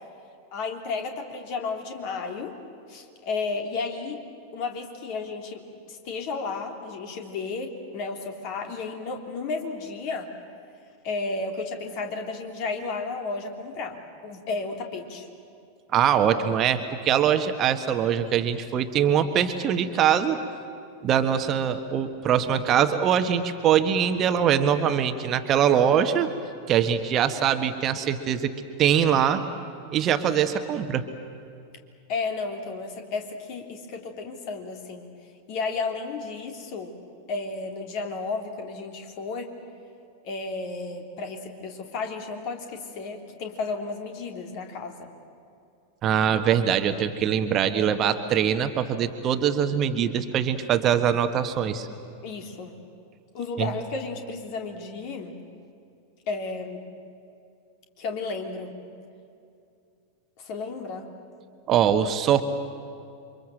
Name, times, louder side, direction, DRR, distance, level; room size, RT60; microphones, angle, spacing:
voice 1, 0.5-2.5 2.9-4.2 4.5-10.3 11.0-14.0 14.2-15.3 32.1-35.1 35.5-36.9 37.3-39.5 40.2-45.1 52.2-52.8 53.3-55.4 56.3-56.8 58.0-58.7 60.4-61.0, left 4 dB, 45° left, 4 dB, 3.3 m, -33 dB
voice 2, 15.9-20.4 21.0-26.3 26.7-28.5 28.8-29.4 29.9-31.0 46.0-51.9 53.6-53.7 61.7-62.4, right 9 dB, 30° right, 8 dB, 1.4 m, -23 dB
28.5 x 24.5 x 7.7 m, 2.5 s
figure-of-eight pair, 90°, 0 cm